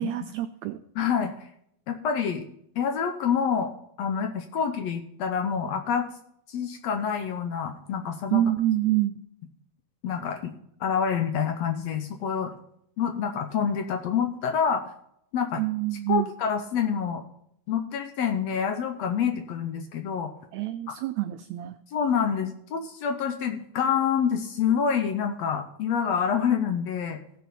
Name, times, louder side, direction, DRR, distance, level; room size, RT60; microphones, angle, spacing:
voice 1, 0.0-0.8 8.3-9.2 15.6-16.3 20.5-21.8, right 14 dB, 90° right, 10 dB, 1.5 m, -27 dB
voice 2, 1.0-1.5 1.9-2.5 2.8-3.7 4.0-6.0 6.5-8.4 10.0-10.5 10.8-12.5 13.0-14.9 15.3-15.6 16.1-17.2 17.7-20.3 21.9-27.2, left 7 dB, 75° left, 6 dB, 1.7 m, -27 dB
16.5 x 6.4 x 4.2 m, 0.73 s
omnidirectional pair, 3.7 m